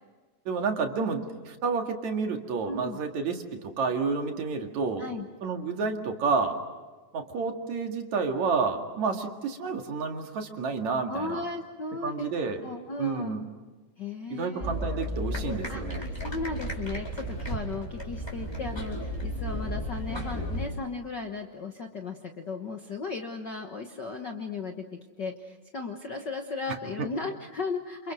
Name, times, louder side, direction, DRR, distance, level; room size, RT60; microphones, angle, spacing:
voice 1, 0.5-5.0 5.4-6.6 7.1-11.4 12.0-12.6 13.0-13.4 14.3-16.0, right 4 dB, 65° right, 3 dB, 3.3 m, -30 dB
voice 2, 2.7-3.0 5.0-5.3 11.1-12.3 12.6-13.4 14.0-14.8 15.7-24.8 25.2-28.1, left 4 dB, 50° left, 3 dB, 1.4 m, -36 dB
sound 1, 14.6-20.7, equal, 5° left, 4.1 m, -34 dB
28.5 x 28.0 x 6.3 m, 1.3 s
omnidirectional pair, 3.6 m